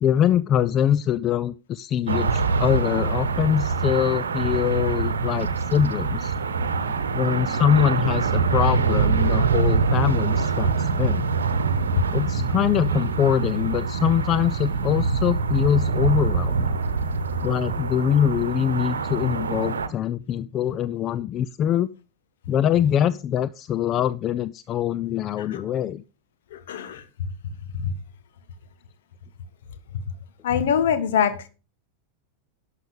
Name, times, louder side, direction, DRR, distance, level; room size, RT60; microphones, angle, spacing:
voice 1, 0.0-6.3 7.1-11.3 12.1-16.8 17.4-21.9 22.5-26.0, left 10 dB, 30° left, 0.4 m, -23 dB
sound 1, 2.1-19.9, right 5 dB, 70° right, 1.0 m, -24 dB
voice 2, 26.5-27.0 27.4-27.9 30.4-31.5, left 7 dB, 55° left, 1.5 m, -24 dB
11.5 x 6.6 x 5.3 m
figure-of-eight pair, 90°, 0 cm